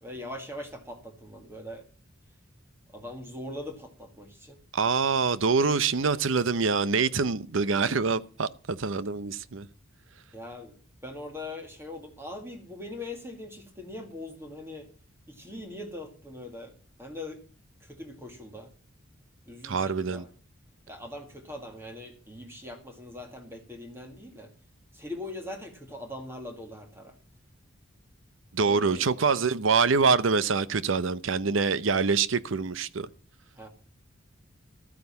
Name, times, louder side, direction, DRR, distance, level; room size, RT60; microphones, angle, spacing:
voice 1, 0.0-1.8 2.9-4.6 10.3-14.9 15.3-17.4 17.8-18.7 19.5-20.3 20.9-24.5 24.9-27.1 28.6-29.1 33.5-33.7, left 1 dB, 10° right, 1.9 m, -41 dB
voice 2, 4.7-9.7 19.6-20.2 28.5-33.1, right 4 dB, 70° right, 0.7 m, -25 dB
13.0 x 9.6 x 5.7 m
head